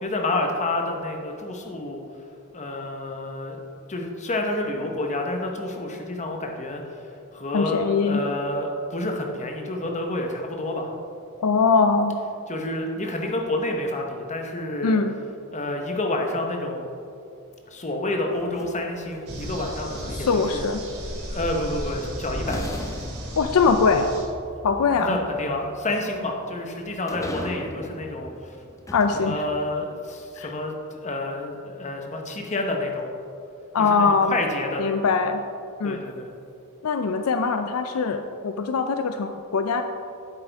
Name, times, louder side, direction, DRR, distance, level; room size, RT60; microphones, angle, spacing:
voice 1, 0.0-2.0 2.5-3.6 3.9-7.0 7.3-10.9 12.5-15.0 15.5-16.9 17.7-20.7 21.3-22.8 24.9-28.6 29.2-33.1 33.8-35.0 35.8-36.3, left 2 dB, 35° left, 2 dB, 1.0 m, -29 dB
voice 2, 7.5-8.2 11.4-12.2 14.8-15.1 20.3-20.8 23.4-24.1 24.6-25.1 28.9-29.3 30.4-30.5 33.7-34.3 34.8-35.4 35.8-36.0 36.8-39.8, left 4 dB, 75° left, 8 dB, 0.4 m, -22 dB
sound 1, 18.3-20.7 21.9-22.0 22.5-29.9, equal, 15° left, 0.6 m, -39 dB
sound 2, 19.3-24.2, equal, 80° right, 2.3 m, -35 dB
9.8 x 8.0 x 3.5 m, 2.6 s
head